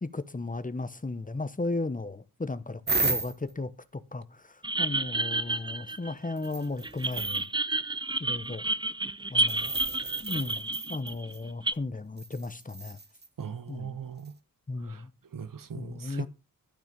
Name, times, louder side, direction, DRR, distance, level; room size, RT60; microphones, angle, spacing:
voice 1, 0.0-7.5 8.2-8.6 9.3-9.7 10.2-13.0 13.7-14.0 14.7-15.1 15.7-16.3, left 3 dB, 25° left, 1.0 m, -35 dB
sound 1, 2.9-3.5 5.9-6.0 6.4-7.4 9.4-11.4 12.2-13.3 14.2-14.3, right 3 dB, 30° right, 1.0 m, -33 dB
sound 2, 4.6-6.5 6.8-11.7, right 2 dB, 15° right, 0.5 m, -30 dB
voice 2, 13.4-14.3 14.8-15.0 15.3-16.3, right 7 dB, 80° right, 1.0 m, -39 dB
12.5 x 6.0 x 5.2 m
wide cardioid pair, 85°, 33 cm